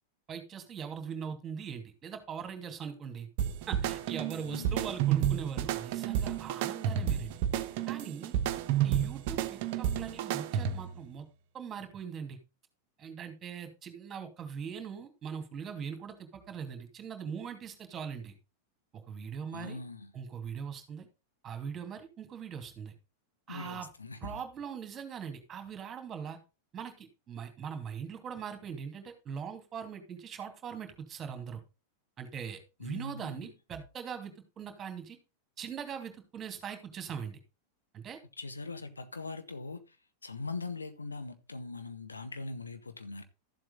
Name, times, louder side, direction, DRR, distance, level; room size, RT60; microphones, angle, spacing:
voice 1, 0.3-3.3 3.7-7.4 7.9-8.3 8.8-11.3 11.5-12.4 13.0-18.3 19.1-19.8 20.1-21.1 21.4-22.9 23.5-23.9 24.2-26.4 26.7-31.6 32.2-35.2 35.6-37.4 37.9-38.2, right 7 dB, 25° right, 2.7 m, -41 dB
sound 1, 3.4-11.0, right 10 dB, 50° right, 1.1 m, -31 dB
voice 2, 4.4-4.9 19.5-20.1 23.5-24.4 32.8-33.5 38.4-40.0 40.2-43.2, left 3 dB, 80° left, 1.3 m, -41 dB
13.0 x 7.7 x 4.1 m
figure-of-eight pair, 90°, 0 cm